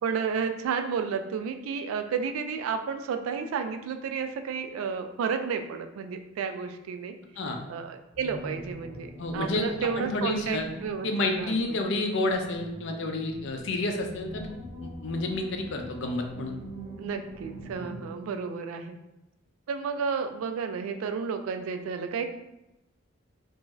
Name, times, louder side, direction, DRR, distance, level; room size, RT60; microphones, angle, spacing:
voice 1, 0.0-7.1 7.7-11.1 11.4-11.8 17.0-19.0 19.7-22.2, right 6 dB, 80° right, 7 dB, 0.3 m, -32 dB
voice 2, 7.4-7.7 9.2-9.7 10.0-10.7 11.0-14.5 14.8-16.6, left 2 dB, 60° left, 4 dB, 0.4 m, -30 dB
sound 1, 8.1-18.1, right 1 dB, 15° right, 0.6 m, -42 dB
2.5 x 2.3 x 3.0 m, 0.91 s
head